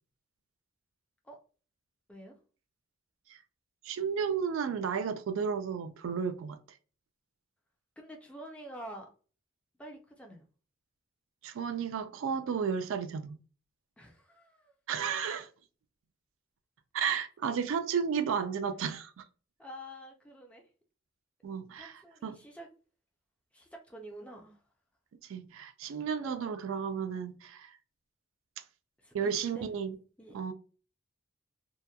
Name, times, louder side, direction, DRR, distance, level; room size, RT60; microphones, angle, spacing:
voice 1, 3.8-6.6 11.4-13.4 14.9-15.5 16.9-19.2 21.4-21.9 22.2-22.4 25.3-27.7 29.1-30.0 30.3-30.5, right 6 dB, 80° right, 0.3 m, -33 dB
voice 2, 8.0-9.1 9.8-10.5 14.0-14.7 19.6-20.6 21.8-22.7 23.5-24.6 26.2-26.5 29.0-29.7 30.2-30.5, right 1 dB, 5° left, 0.4 m, -48 dB
2.8 x 2.1 x 2.2 m
head